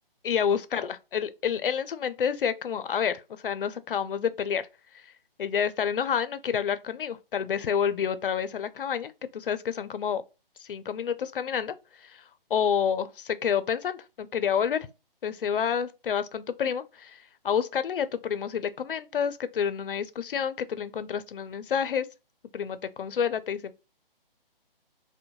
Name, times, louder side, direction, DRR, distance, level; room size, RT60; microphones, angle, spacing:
voice 1, 0.2-4.7 5.4-10.2 10.6-11.7 12.0-12.2 12.5-14.9 15.2-17.2 17.4-22.1 22.5-23.7, left 7 dB, 65° left, 0.5 m, -29 dB
2.6 x 2.1 x 2.9 m
hypercardioid pair, 165°, 29 cm